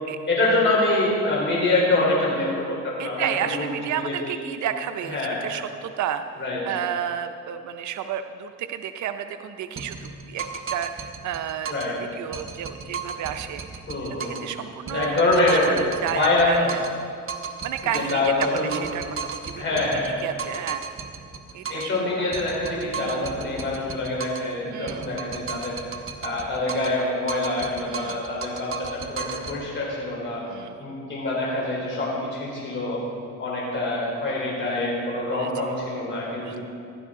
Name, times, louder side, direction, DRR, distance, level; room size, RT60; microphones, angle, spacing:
voice 1, 0.3-3.7 4.0-4.4 5.1-5.4 6.4-6.6 11.7-12.0 13.9-14.4 14.9-15.8 16.1-16.7 17.9-18.8 19.6-20.1 21.7-25.8 26.2-30.4 30.8-33.0 33.4-36.6, left 2 dB, 40° left, -4 dB, 3.7 m, -25 dB
voice 2, 3.0-6.2 6.6-10.4 10.7-13.8 14.1-15.2 15.5-16.8 17.6-19.8 20.2-20.8 21.5-21.9 22.3-22.4 23.0-23.2 24.7-25.1 27.9-28.2 30.5-30.8 35.3-35.7 36.4-36.6, right 9 dB, 75° right, 8 dB, 0.6 m, -32 dB
sound 1, 9.8-12.0 12.3-14.5 14.9-17.0 17.3-22.0 22.3-24.5 24.9-27.0 27.3-29.6, right 6 dB, 45° right, 1.0 m, -35 dB
15.0 x 12.0 x 3.7 m, 2.3 s
cardioid pair, 90°, 30 cm